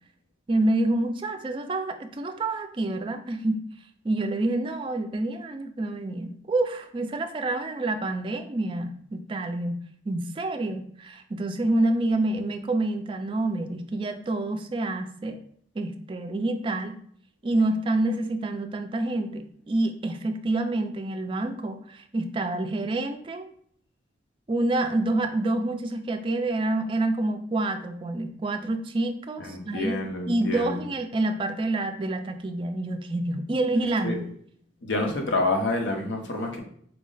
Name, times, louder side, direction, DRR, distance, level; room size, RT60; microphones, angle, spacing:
voice 1, 0.5-3.6 4.0-9.8 10.1-15.4 15.8-17.0 17.4-23.5 24.5-30.0 30.3-34.3, right 2 dB, 30° right, 7 dB, 0.3 m, -27 dB
voice 2, 29.4-30.8 34.0-34.2 34.8-36.6, left 2 dB, 85° left, 2 dB, 0.9 m, -28 dB
4.7 x 2.1 x 3.8 m, 0.62 s
head